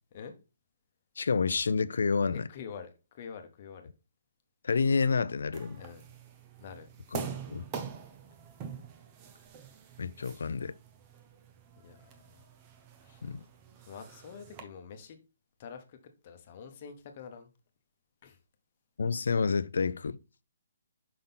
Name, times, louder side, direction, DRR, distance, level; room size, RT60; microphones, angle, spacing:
voice 1, 1.2-2.5 4.6-5.8 7.1-7.2 7.5-7.6 10.0-10.8 13.2-13.4 19.0-20.2, left 5 dB, 75° left, 0.5 m, -29 dB
voice 2, 2.3-3.9 5.8-6.1 6.6-6.9 11.8-12.0 13.0-13.2 13.9-15.2 15.6-16.0 16.2-17.5 18.2-18.4, left 6 dB, 35° left, 1.1 m, -46 dB
sound 1, 5.5-14.6, right 6 dB, 20° right, 0.8 m, -45 dB
5.7 x 3.8 x 5.7 m
hypercardioid pair, 165°, 0 cm